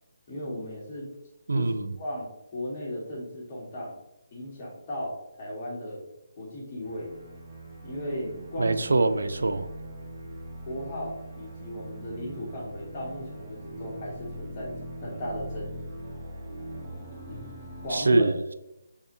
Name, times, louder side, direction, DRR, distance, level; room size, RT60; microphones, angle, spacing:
voice 1, 0.3-1.1 1.5-1.7 2.0-3.9 4.3-6.1 6.4-7.1 7.8-8.7 10.6-14.7 15.0-15.9 17.3-17.5 17.8-18.3, left 1 dB, 30° left, -3 dB, 1.5 m, -35 dB
voice 2, 1.5-1.9 8.6-9.7 17.9-18.5, right 3 dB, 85° right, 11 dB, 0.3 m, -24 dB
sound 1, 6.8-17.9, right 1 dB, 25° right, 1.2 m, -41 dB
6.5 x 2.7 x 2.7 m, 0.88 s
hypercardioid pair, 165°, 0 cm